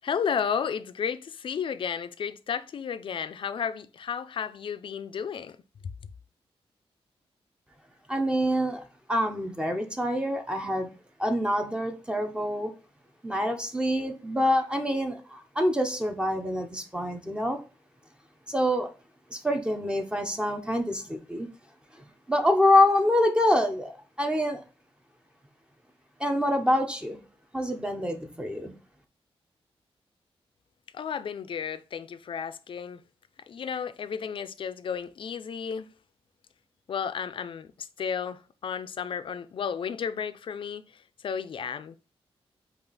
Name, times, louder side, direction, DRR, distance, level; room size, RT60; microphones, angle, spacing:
voice 1, 0.0-5.6 30.9-33.0 33.5-35.9 36.9-42.0, left 7 dB, 55° left, 0.4 m, -33 dB
voice 2, 8.1-8.8 9.1-10.9 11.2-12.7 13.2-17.6 18.5-18.9 19.3-21.5 22.3-24.6 26.2-27.2 27.5-28.7, left 1 dB, 10° right, 0.6 m, -26 dB
5.5 x 2.4 x 3.9 m
wide cardioid pair, 115°, 10 cm